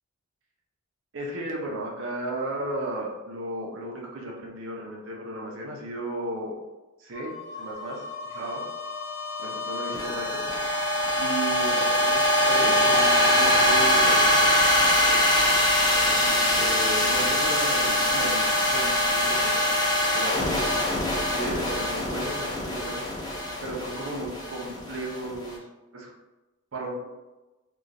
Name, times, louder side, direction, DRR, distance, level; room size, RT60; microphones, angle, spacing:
voice 1, 1.1-6.5 7.0-8.6 9.4-10.4 11.2-14.2 15.1-15.6 16.0-18.4 18.7-19.6 20.1-20.6 21.3-23.2 23.6-25.7 25.9-26.1 26.7-26.9, right 1 dB, 60° right, -1 dB, 0.7 m, -34 dB
sound 1, 7.1-25.5, left 1 dB, 20° left, 0.5 m, -23 dB
3.0 x 2.4 x 2.5 m, 1.1 s
head